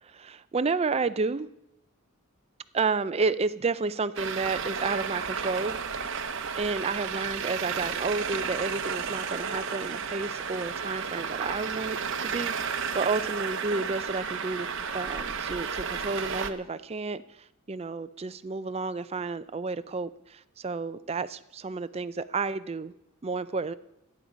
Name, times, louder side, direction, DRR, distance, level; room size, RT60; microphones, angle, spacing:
voice 1, 0.0-1.5 2.7-5.8 6.5-14.7 14.9-22.9 23.2-23.7, right 4 dB, 30° right, 0.4 m, -31 dB
Traffic noise roadway noise, 4.2-16.5, right 6 dB, 55° right, 0.8 m, -32 dB
24.0 x 8.7 x 5.1 m
head